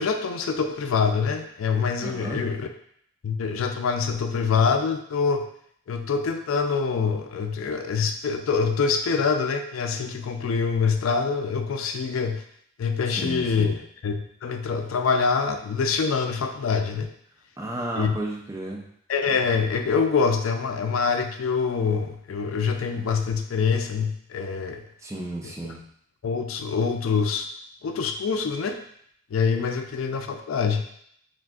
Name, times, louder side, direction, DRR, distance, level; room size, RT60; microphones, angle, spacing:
voice 1, 0.0-2.7 3.2-5.5 5.9-12.4 12.8-17.1 17.9-18.1 19.1-24.8 25.4-25.5 26.2-27.5 27.8-28.8 29.3-30.8, left 5 dB, 85° left, 6 dB, 0.4 m, -25 dB
voice 2, 2.0-2.4 13.1-13.8 17.6-18.8 25.0-25.8, right 1 dB, 15° right, -1 dB, 0.5 m, -33 dB
6.0 x 2.5 x 2.3 m, 0.67 s
head